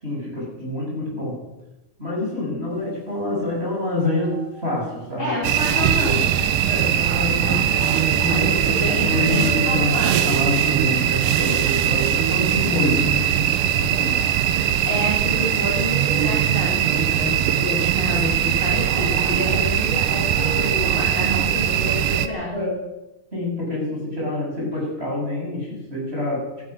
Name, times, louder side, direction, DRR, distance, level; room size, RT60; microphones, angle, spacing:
voice 1, 0.0-1.4 2.0-5.3 5.9-6.2 6.7-14.2 22.5-22.8 23.3-26.5, left 1 dB, 15° right, -3 dB, 7.0 m, -27 dB
sound 1, 3.0-3.1 3.4-6.7 7.1-8.8 9.1-12.6 13.3-16.4 17.5-18.1 18.5-19.6 20.1-21.2 21.6-21.7 22.1-22.5, left 2 dB, 85° left, 5.9 m, -41 dB
voice 2, 5.2-6.6 8.2-10.5 14.9-22.7, left 1 dB, 35° left, -5 dB, 5.5 m, -29 dB
sound 2, 5.4-22.3, right 10 dB, 75° right, 2.3 m, -21 dB
17.5 x 13.0 x 6.3 m, 0.97 s
omnidirectional pair, 4.1 m